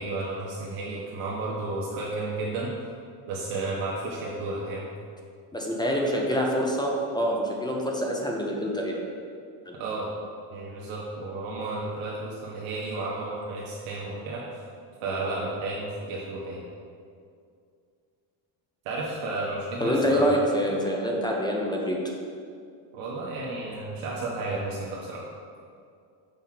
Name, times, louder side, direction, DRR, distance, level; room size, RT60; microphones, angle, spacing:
voice 1, 0.0-2.7 3.3-4.9 9.7-10.1 10.5-14.4 15.0-16.6 18.8-20.3 22.9-25.2, right 2 dB, 75° right, -5 dB, 1.3 m, -32 dB
voice 2, 5.5-9.0 9.7-9.8 19.8-22.0, equal, 10° left, -1 dB, 0.7 m, -26 dB
6.8 x 4.8 x 5.9 m, 2.3 s
cardioid pair, 155°, 50 cm